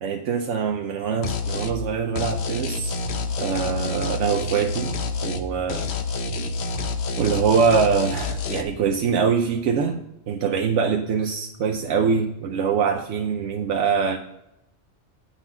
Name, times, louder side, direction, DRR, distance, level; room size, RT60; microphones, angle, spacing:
voice 1, 0.0-2.9 3.4-4.9 5.2-5.9 7.2-10.0 10.3-14.2, right 6 dB, 80° right, 4 dB, 1.0 m, -23 dB
sound 1, 1.2-1.8 2.2-5.4 5.7-8.6, left 3 dB, 65° left, 1.0 m, -28 dB
9.1 x 4.1 x 5.9 m, 0.86 s
omnidirectional pair, 1.2 m